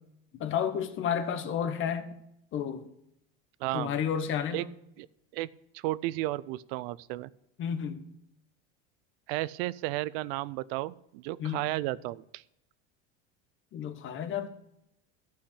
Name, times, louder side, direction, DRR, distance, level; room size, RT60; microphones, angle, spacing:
voice 1, 0.4-2.1 2.5-2.8 3.7-4.7 7.6-8.0 11.4-11.7 13.7-14.5, left 8 dB, 40° left, 1.2 m, -31 dB
voice 2, 3.6-3.9 4.5-4.6 5.0-5.1 5.3-5.5 5.7-7.3 9.3-12.4, right 17 dB, 70° right, 0.5 m, -33 dB
11.5 x 5.8 x 8.3 m
supercardioid pair, 125°, 30 cm